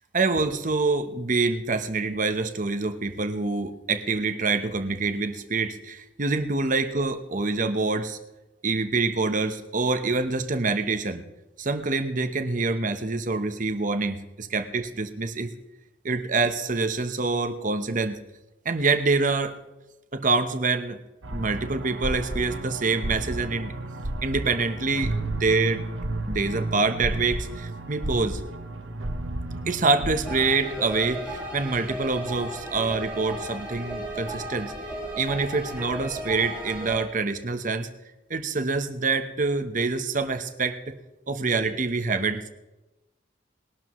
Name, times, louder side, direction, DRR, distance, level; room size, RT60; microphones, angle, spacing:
voice 1, 0.1-8.2 8.6-11.3 11.6-15.5 16.0-18.2 18.6-19.6 20.1-21.0 21.3-23.7 24.2-25.8 26.3-28.4 29.7-34.7 35.2-37.9 38.3-41.0 41.3-42.5, right 3 dB, 40° right, 9 dB, 1.0 m, -26 dB
sound 1, 21.2-30.5, right 1 dB, 85° right, 1.2 m, -32 dB
sound 2, 30.2-37.0, right 1 dB, 5° right, 3.4 m, -35 dB
20.5 x 12.0 x 3.1 m, 1.0 s
head